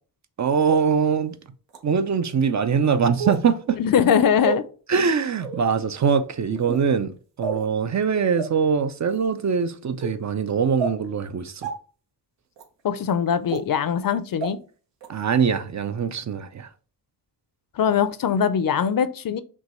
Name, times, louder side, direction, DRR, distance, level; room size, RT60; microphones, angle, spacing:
voice 1, 0.4-1.3 1.8-3.8 4.9-11.7 15.1-16.7, right 6 dB, 45° right, 0.4 m, -23 dB
sound 1, 0.7-0.8 1.7-1.8 3.2-3.4 4.4-4.6 5.4-5.6 6.6-6.8 7.4-7.6 8.4-8.5 9.1-9.3 10.0-10.1 10.8-10.9 11.6-11.7 12.6-12.7 13.5-13.6 14.4-14.5 15.0-15.1, right 5 dB, 90° right, 1.1 m, -29 dB
voice 2, 3.8-4.6 12.8-14.6 17.8-19.4, left 8 dB, 55° left, 0.5 m, -21 dB
6.0 x 2.2 x 3.0 m
wide cardioid pair, 90°, 42 cm